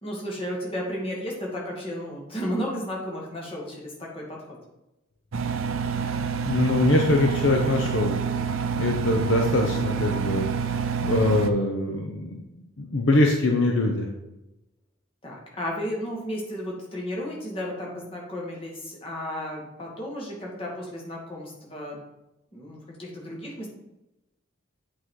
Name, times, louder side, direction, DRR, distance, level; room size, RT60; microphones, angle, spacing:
voice 1, 0.0-4.6 15.2-22.0 22.5-23.7, equal, 25° left, -3 dB, 2.0 m, -33 dB
Engine, 5.3-11.5, right 6 dB, 75° right, 0.5 m, -27 dB
voice 2, 6.4-8.2 8.8-10.5 11.0-12.4 12.8-14.1, left 2 dB, 60° left, 1 dB, 0.8 m, -23 dB
8.2 x 4.1 x 4.7 m, 0.93 s
head